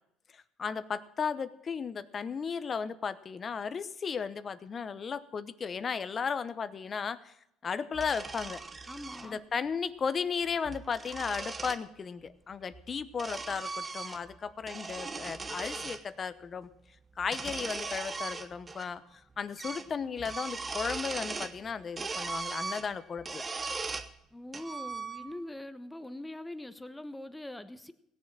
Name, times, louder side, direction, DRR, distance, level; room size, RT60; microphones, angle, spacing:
voice 1, 0.3-7.3 7.6-8.6 9.2-16.7 17.2-23.4, left 6 dB, 40° left, 14 dB, 0.9 m, -35 dB
sound 1, 7.9-9.3 10.5-11.8 12.7-14.4 14.6-16.0 17.2-18.9 19.1-19.2 19.6-19.9 20.2-21.6 22.0-24.1 24.5-25.5, right 4 dB, 25° right, 1.1 m, -39 dB
voice 2, 8.9-9.4 24.3-27.9, left 1 dB, 10° left, 11 dB, 1.1 m, -43 dB
17.0 x 7.3 x 7.5 m, 0.78 s
supercardioid pair, 85°, 0 cm